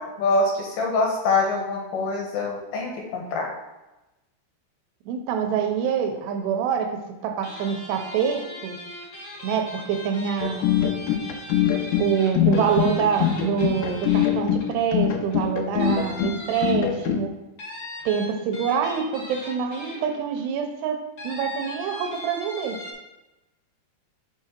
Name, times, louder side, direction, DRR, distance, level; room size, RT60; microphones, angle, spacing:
voice 1, 0.0-3.5, left 3 dB, 70° left, 0 dB, 2.9 m, -24 dB
voice 2, 5.1-8.8 9.4-10.7 12.0-17.3 18.1-21.0 21.2-22.8, right 7 dB, 85° right, 5 dB, 2.8 m, -25 dB
sound 1, 7.4-14.8 15.3-15.4 15.8-17.1 17.6-20.4 21.2-22.9, left 1 dB, 40° left, 2.3 m, -39 dB
sound 2, 10.4-17.2, left 9 dB, 85° left, 2.9 m, -23 dB
6.3 x 5.8 x 4.3 m, 1.0 s
omnidirectional pair, 4.9 m